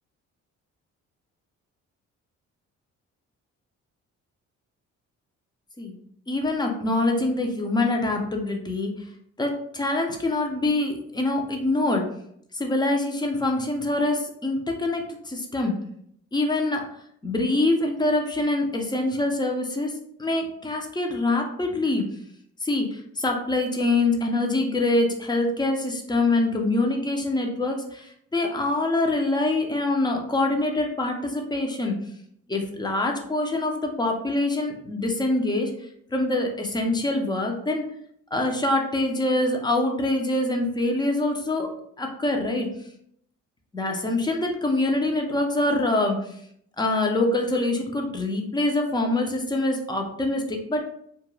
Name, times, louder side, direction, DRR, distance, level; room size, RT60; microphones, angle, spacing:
voice 1, 6.3-8.9 9.4-12.0 12.5-15.8 16.3-16.8 17.2-19.9 20.2-22.1 22.6-32.0 32.5-35.7 36.1-37.8 38.3-41.7 42.0-42.7 43.7-46.2 46.8-50.9, left 2 dB, 15° left, 2 dB, 0.5 m, -25 dB
2.3 x 2.1 x 3.1 m, 0.70 s
cardioid pair, 90°, 30 cm